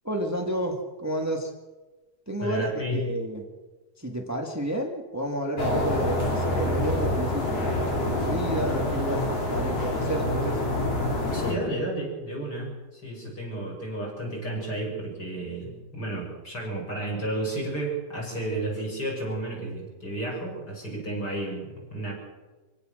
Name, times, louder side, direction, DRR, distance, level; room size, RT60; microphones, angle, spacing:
voice 1, 0.0-1.5 2.3-3.4 4.0-7.8 8.1-10.6, right 1 dB, 10° right, 3 dB, 0.7 m, -31 dB
voice 2, 2.4-3.1 11.3-22.1, right 1 dB, 25° left, -1 dB, 7.0 m, -32 dB
sound 1, 5.6-11.5, left 1 dB, 40° left, 4.8 m, -26 dB
25.5 x 17.0 x 6.6 m, 1.2 s
omnidirectional pair, 4.3 m